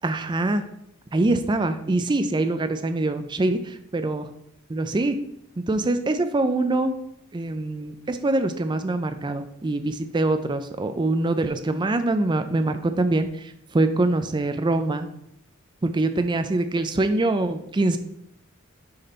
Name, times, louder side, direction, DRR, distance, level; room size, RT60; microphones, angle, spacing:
voice 1, 0.0-0.6 1.1-4.2 4.7-5.2 5.6-6.9 7.3-13.3 13.7-15.1 15.8-18.0, right 2 dB, 20° right, 8 dB, 0.4 m, -24 dB
6.5 x 4.2 x 4.2 m, 0.75 s
head